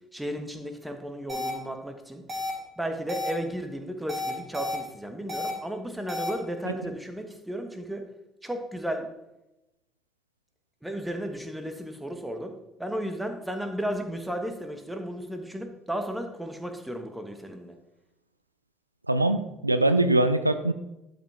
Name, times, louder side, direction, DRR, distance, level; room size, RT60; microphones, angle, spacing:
voice 1, 0.1-2.2 2.8-8.0 8.4-9.1 10.8-12.5 12.8-17.8, equal, 5° right, 5 dB, 1.4 m, -34 dB
sound 1, 1.3-1.5 2.3-2.5 3.1-3.3 4.1-4.8 5.3-5.5 6.1-6.3, left 2 dB, 35° right, 2.8 m, -31 dB
voice 2, 19.1-20.7, right 2 dB, 90° right, 10 dB, 0.3 m, -23 dB
11.5 x 5.2 x 3.7 m, 0.91 s
figure-of-eight pair, 55°, 0 cm